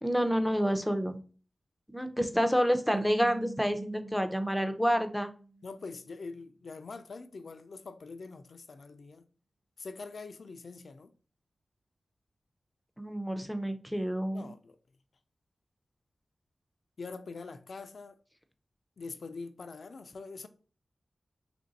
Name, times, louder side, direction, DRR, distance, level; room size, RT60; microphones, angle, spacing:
voice 1, 0.0-1.2 1.9-5.3 13.0-14.5, equal, ahead, 0.6 m, -29 dB
sound 1, 2.9-6.1, right 3 dB, 60° right, 0.4 m, -46 dB
voice 2, 5.6-9.3 9.8-11.1 14.3-14.8 17.0-18.2 19.0-20.5, left 4 dB, 70° left, 0.4 m, -44 dB
3.1 x 2.6 x 3.9 m
cardioid pair, 45°, 0 cm